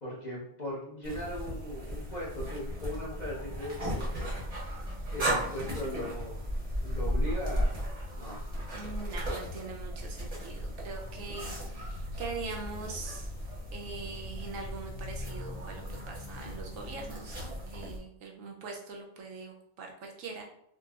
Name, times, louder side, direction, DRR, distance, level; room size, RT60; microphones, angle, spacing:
voice 1, 0.0-4.6 5.1-6.4 6.8-7.7 8.1-8.4, left 1 dB, 35° left, -6 dB, 1.0 m, -39 dB
sound 1, 1.0-18.0, equal, 30° right, 0.9 m, -36 dB
voice 2, 8.7-13.3 13.7-20.4, right 4 dB, 75° right, 1 dB, 0.9 m, -42 dB
3.8 x 2.3 x 2.4 m, 0.75 s
omnidirectional pair, 1.5 m